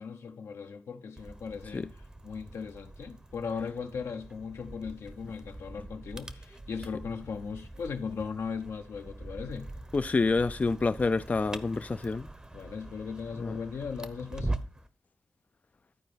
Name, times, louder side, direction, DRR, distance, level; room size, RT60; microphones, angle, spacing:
voice 1, 0.0-9.7 12.5-14.6, left 5 dB, 85° left, 1.0 m, -38 dB
sound 1, 1.2-14.9, right 2 dB, 15° right, 0.7 m, -43 dB
voice 2, 9.9-12.3 13.4-13.5, left 3 dB, 35° left, 0.3 m, -27 dB
11.5 x 4.5 x 5.1 m
cardioid pair, 65°, 5 cm